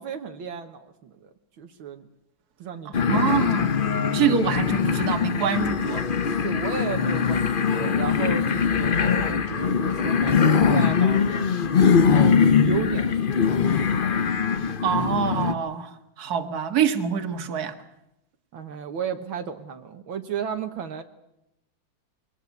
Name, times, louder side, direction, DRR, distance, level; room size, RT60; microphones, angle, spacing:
voice 1, 0.0-2.1 2.6-3.7 6.4-11.5 12.1-13.6 18.5-21.0, right 7 dB, 75° right, 2.0 m, -34 dB
sound 1, 2.9-15.5, left 6 dB, 65° left, 0.5 m, -22 dB
voice 2, 2.9-3.7 4.1-6.1 14.8-17.7, right 8 dB, 50° right, 2.1 m, -25 dB
22.5 x 18.5 x 8.3 m
omnidirectional pair, 2.3 m